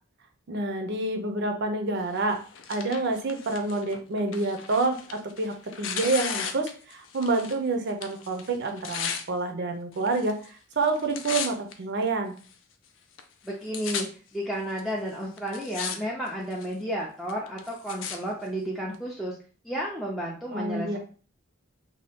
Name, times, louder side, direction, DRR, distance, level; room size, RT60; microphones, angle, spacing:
voice 1, 0.5-2.4 2.7-12.3 20.5-21.0, right 3 dB, 55° right, 5 dB, 0.5 m, -28 dB
Tearing, 2.2-7.6 7.9-9.2 10.0-10.5 10.8-11.7 12.4-12.5 13.2-13.3 13.5-14.0 14.8-14.9 15.4-16.0 16.3-16.7 17.3-18.2 18.9-19.0, left 7 dB, 65° left, 0.4 m, -35 dB
voice 2, 13.4-14.1 14.3-19.4 19.6-21.0, equal, ahead, -4 dB, 0.4 m, -32 dB
2.7 x 2.2 x 3.4 m, 0.41 s
head